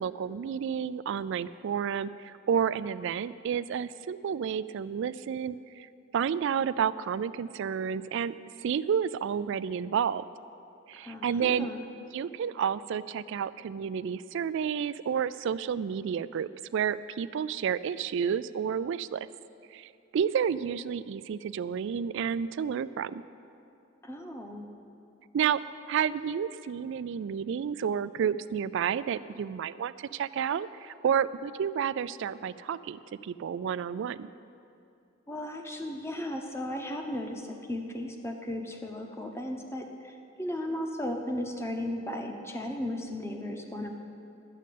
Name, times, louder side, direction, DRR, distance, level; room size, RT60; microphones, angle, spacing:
voice 1, 0.0-5.9 6.1-8.3 8.6-10.2 10.9-11.7 12.1-19.3 19.7-23.2 25.3-25.6 25.9-34.3, right 7 dB, 60° right, 15 dB, 0.3 m, -30 dB
voice 2, 10.9-11.9 24.0-24.6 35.3-43.9, left 1 dB, 10° left, 3 dB, 0.9 m, -36 dB
12.0 x 6.4 x 8.4 m, 2.6 s
head